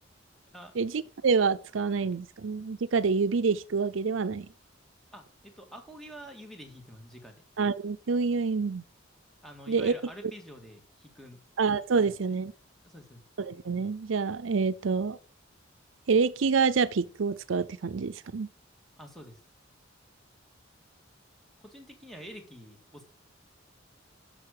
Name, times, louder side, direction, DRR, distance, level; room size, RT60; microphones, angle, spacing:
voice 1, 0.8-4.5 7.6-8.8 9.7-9.9 11.6-12.5 13.4-15.2 16.1-18.5, right 5 dB, 70° right, 0.5 m, -27 dB
voice 2, 5.1-7.4 9.4-11.4 12.0-12.4 12.8-13.2 19.0-19.4 21.6-23.0, equal, ahead, 2.1 m, -47 dB
10.5 x 6.5 x 6.6 m
head